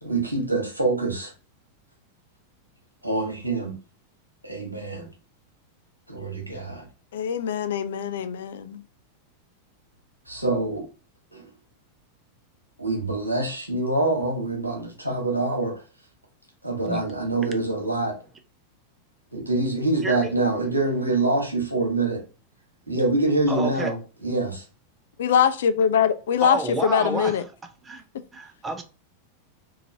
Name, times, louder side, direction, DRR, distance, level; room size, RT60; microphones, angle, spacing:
voice 1, 0.0-1.3 3.0-3.7 4.4-5.1 6.1-6.9 10.3-10.8 11.3-11.5 12.8-15.8 16.6-18.1 19.3-22.2 22.9-24.6, right 2 dB, 85° right, 1.1 m, -25 dB
voice 2, 7.1-8.8 25.2-27.4, left 8 dB, 60° left, 0.3 m, -23 dB
voice 3, 20.0-20.3 23.5-23.9 26.4-27.4 27.8-28.0 28.3-28.8, right 3 dB, 15° right, 0.6 m, -29 dB
2.8 x 2.5 x 2.7 m
figure-of-eight pair, 90°, 0 cm